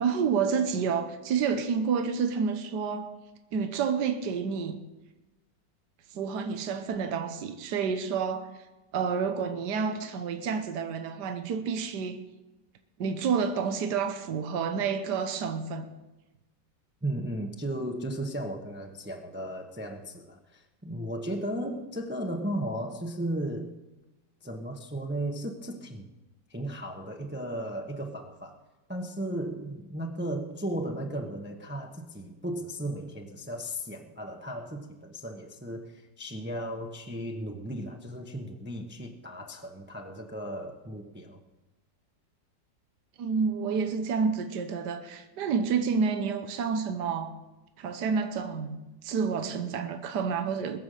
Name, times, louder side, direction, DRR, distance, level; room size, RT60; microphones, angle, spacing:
voice 1, 0.0-3.1 3.5-4.8 6.1-8.5 8.9-12.2 13.0-15.9 43.2-47.3 47.8-50.8, right 6 dB, 70° right, 1.6 m, -29 dB
voice 2, 17.0-23.7 24.4-26.1 26.5-28.6 28.9-41.4, right 1 dB, 10° right, 0.9 m, -35 dB
21.5 x 7.3 x 6.5 m
omnidirectional pair, 1.9 m